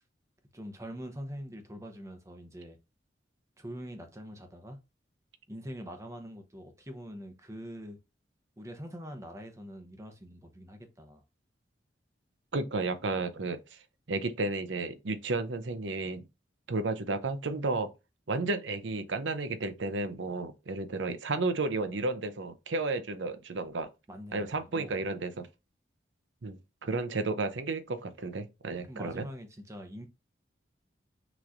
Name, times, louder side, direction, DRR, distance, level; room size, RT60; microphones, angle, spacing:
voice 1, 0.5-2.8 3.6-4.8 5.5-8.0 8.6-11.2 24.1-25.0 28.9-30.1, equal, 15° right, 0.8 m, -44 dB
voice 2, 12.5-13.6 14.1-16.2 16.7-17.9 18.3-23.9 24.3-25.5 26.4-29.3, right 3 dB, 85° right, 0.7 m, -32 dB
6.1 x 3.1 x 2.5 m
head